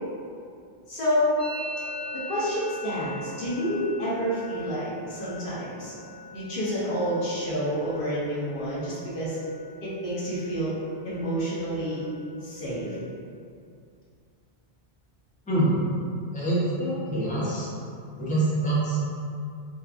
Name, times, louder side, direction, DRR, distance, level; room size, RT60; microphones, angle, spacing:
voice 1, 0.9-1.3 2.1-5.9 6.3-9.4 9.8-10.7 11.0-12.0 12.4-12.9, equal, 60° left, -8 dB, 1.0 m, -29 dB
Musical instrument, 1.4-9.0 9.3-9.9 10.1-10.7 11.0-13.0, equal, 70° right, 1.0 m, -42 dB
voice 2, 15.5-15.8 16.3-17.7 18.2-19.0, right 2 dB, 10° left, -9 dB, 0.4 m, -25 dB
2.9 x 2.2 x 2.4 m, 2.4 s
omnidirectional pair, 1.1 m